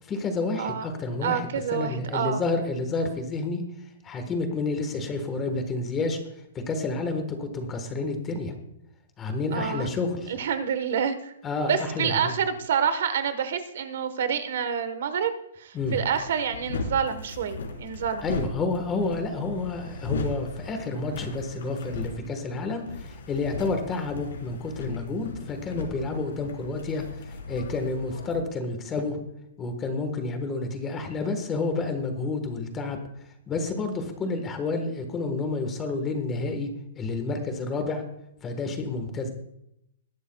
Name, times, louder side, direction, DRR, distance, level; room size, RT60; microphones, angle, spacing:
voice 1, 0.0-3.6 4.0-6.2 6.7-8.5 9.2-10.3 11.4-12.3 15.7-16.0 18.2-29.2 29.6-33.0 33.5-38.0 38.4-39.3, left 3 dB, 15° left, 6 dB, 1.3 m, -30 dB
voice 2, 1.2-2.4 9.5-9.9 10.3-11.3 11.7-18.2, right 7 dB, 55° right, 11 dB, 1.2 m, -28 dB
sound 1, 15.8-28.4, left 3 dB, 80° left, 3.8 m, -37 dB
20.5 x 11.5 x 2.3 m, 0.78 s
hypercardioid pair, 175°, 0 cm